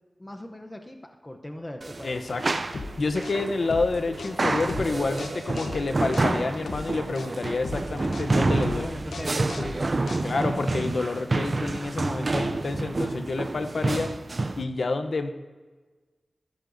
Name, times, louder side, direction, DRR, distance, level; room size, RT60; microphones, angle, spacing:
voice 1, 0.2-2.2 8.7-10.1, left 1 dB, 20° left, 4 dB, 0.7 m, -39 dB
sound 1, 1.8-14.6, right 2 dB, 40° right, 0.4 m, -29 dB
sound 2, 1.8-7.6, right 2 dB, 80° right, 1.4 m, -49 dB
voice 2, 2.0-2.6 3.0-8.9 10.2-14.1 14.6-15.3, left 3 dB, 65° left, 8 dB, 0.7 m, -28 dB
sound 3, 2.7-10.6, left 3 dB, 90° left, 1.0 m, -37 dB
14.5 x 11.5 x 2.6 m, 1.3 s
wide cardioid pair, 100°, 0 cm